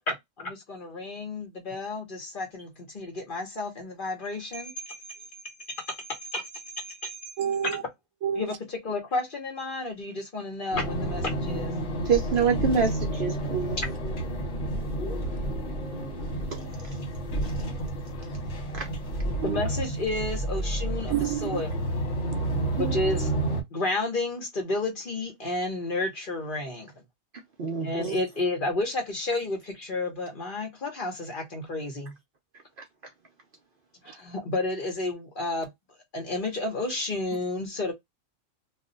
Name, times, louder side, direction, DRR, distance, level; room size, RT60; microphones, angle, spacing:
voice 1, 0.1-5.2 5.4-6.5 6.8-7.3 8.3-11.7 19.4-21.7 22.8-23.3 23.7-26.9 27.8-32.1 34.0-35.7 36.1-37.9, left 2 dB, 45° left, 0.9 m, -31 dB
voice 2, 7.4-7.8 8.2-8.5 15.1-16.7 19.4-19.6 21.1-21.6 22.3-23.0, right 9 dB, 75° right, 0.9 m, -32 dB
sound 1, 10.7-23.6, right 1 dB, 65° left, 1.3 m, -30 dB
voice 3, 12.1-13.8 18.7-18.9 27.6-28.2, right 6 dB, 55° right, 0.6 m, -26 dB
2.4 x 2.2 x 3.8 m
omnidirectional pair, 1.4 m